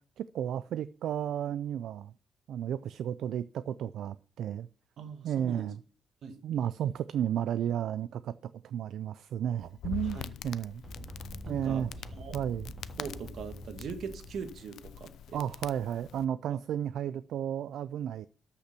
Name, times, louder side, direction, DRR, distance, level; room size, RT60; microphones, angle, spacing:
voice 1, 0.2-2.1 2.5-4.7 5.2-5.8 6.4-10.2 10.4-10.8 11.5-11.9 12.3-12.7 15.3-18.3, right 10 dB, 75° right, 0.4 m, -33 dB
voice 2, 5.0-5.7 6.2-6.4 10.1-10.3 11.4-11.8 12.1-12.4 13.0-15.4 16.5-16.6, right 6 dB, 60° right, 1.5 m, -41 dB
Crackle, 9.6-16.2, left 11 dB, 75° left, 0.5 m, -44 dB
sound 1, 10.8-14.8, equal, 10° right, 3.7 m, -45 dB
13.0 x 5.7 x 5.9 m
wide cardioid pair, 165°, 0 cm